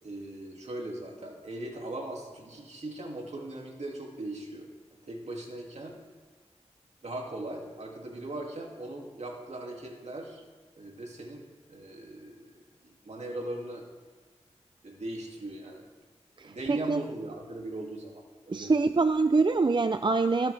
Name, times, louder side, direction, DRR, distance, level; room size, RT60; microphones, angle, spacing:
voice 1, 0.0-4.7 5.1-6.0 7.0-10.4 10.8-12.5 12.8-13.8 14.8-15.9 16.4-18.7, right 1 dB, 70° right, 0 dB, 2.5 m, -39 dB
voice 2, 16.4-17.0 18.5-20.5, right 3 dB, 40° right, 10 dB, 0.5 m, -25 dB
20.5 x 9.0 x 3.4 m, 1.4 s
cardioid pair, 50°, 12 cm